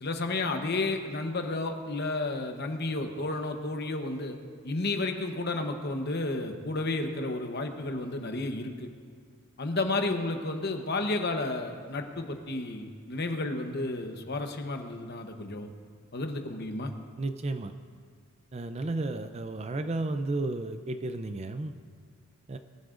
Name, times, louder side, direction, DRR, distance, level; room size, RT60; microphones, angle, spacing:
voice 1, 0.0-4.4 4.6-8.9 9.6-15.7 16.1-16.9, left 2 dB, 45° left, 5 dB, 0.9 m, -32 dB
voice 2, 17.2-17.7 18.5-21.7 22.5-22.6, right 2 dB, 30° right, 9 dB, 0.4 m, -32 dB
22.0 x 11.5 x 2.5 m, 2.1 s
head